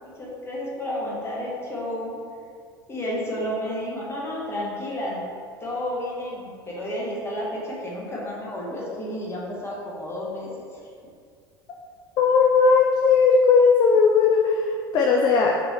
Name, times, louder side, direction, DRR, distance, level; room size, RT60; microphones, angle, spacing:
voice 1, 0.0-2.2 2.9-5.2 5.6-10.5, left 1 dB, 20° left, -5 dB, 1.2 m, -31 dB
voice 2, 12.2-15.5, left 5 dB, 35° left, 0 dB, 0.4 m, -18 dB
3.3 x 3.0 x 4.1 m, 2.2 s
figure-of-eight pair, 75°, 12 cm